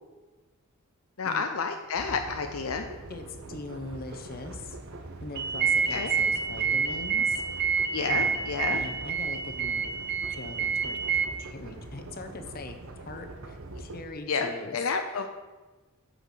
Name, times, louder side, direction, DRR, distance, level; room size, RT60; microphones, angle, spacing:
voice 1, 1.2-2.9 5.9-6.1 7.9-8.8 14.3-15.3, left 5 dB, 70° left, 6 dB, 0.6 m, -30 dB
sound 1, 1.9-14.1, right 2 dB, 70° right, 0.9 m, -43 dB
voice 2, 3.1-4.8 5.2-7.4 8.0-9.9 10.3-11.0 11.4-15.3, left 2 dB, 45° left, 6 dB, 0.9 m, -41 dB
sound 2, 5.4-11.3, right 6 dB, 50° right, 0.5 m, -28 dB
8.2 x 5.8 x 6.6 m, 1.2 s
head